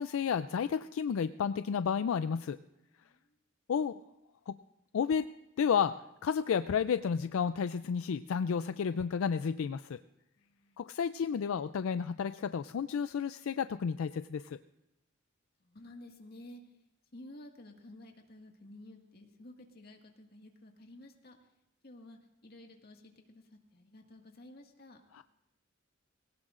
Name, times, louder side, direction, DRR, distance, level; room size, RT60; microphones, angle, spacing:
voice 1, 0.0-2.6 3.7-4.0 4.5-4.6 4.9-5.3 5.6-5.9 6.2-10.0 10.8-14.6 25.1-25.2, left 7 dB, 80° left, 12 dB, 0.4 m, -31 dB
voice 2, 3.0-3.3 10.4-10.8 15.6-16.7 17.1-21.4 21.8-25.0, left 1 dB, 50° left, 2 dB, 1.8 m, -53 dB
20.5 x 17.5 x 2.5 m, 0.90 s
head